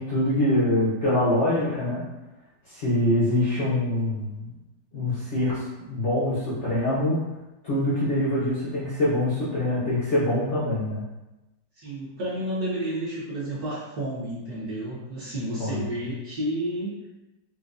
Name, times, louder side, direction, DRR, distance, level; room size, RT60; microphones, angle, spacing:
voice 1, 0.0-2.0 2.7-4.5 4.9-5.6 5.9-7.2 7.6-11.0 15.6-15.8, left 1 dB, 80° left, -10 dB, 0.6 m, -24 dB
voice 2, 11.8-17.0, right 1 dB, 60° right, -8 dB, 1.1 m, -31 dB
5.0 x 2.1 x 2.5 m, 1.0 s
omnidirectional pair, 2.4 m